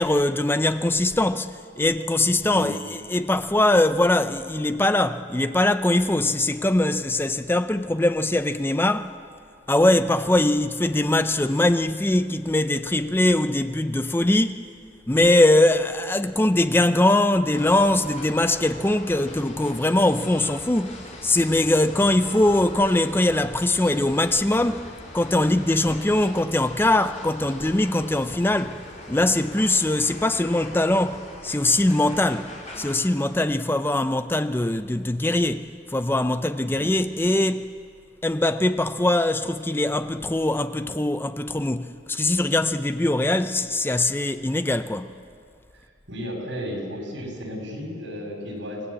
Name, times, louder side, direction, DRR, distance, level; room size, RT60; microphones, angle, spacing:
voice 1, 0.0-9.1 9.7-14.6 15.1-24.8 25.1-28.8 29.1-32.5 32.8-37.7 38.2-45.1, left 1 dB, 10° left, 0.5 m, -22 dB
sound 1, 17.5-32.9, left 1 dB, 40° left, 4.1 m, -41 dB
voice 2, 46.1-48.8, equal, 90° right, 6.3 m, -33 dB
26.0 x 17.0 x 8.4 m
head